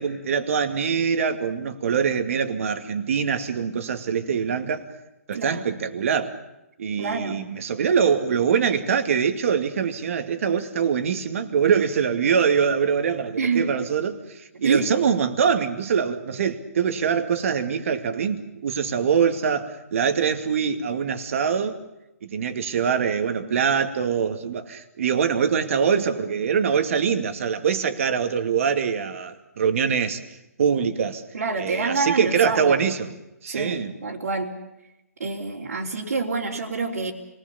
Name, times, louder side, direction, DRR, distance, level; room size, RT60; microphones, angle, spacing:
voice 1, 0.0-4.8 5.3-6.4 6.8-21.8 22.2-30.2 30.6-31.2 31.6-33.1 33.4-33.9, right 7 dB, 55° right, 2.4 m, -23 dB
voice 2, 5.3-5.6 7.0-7.4 13.4-13.7 14.6-14.9 31.3-32.8 33.5-34.5 35.2-37.1, right 4 dB, 70° right, 3.6 m, -27 dB
29.5 x 20.0 x 7.1 m
hypercardioid pair, 140°, 9 cm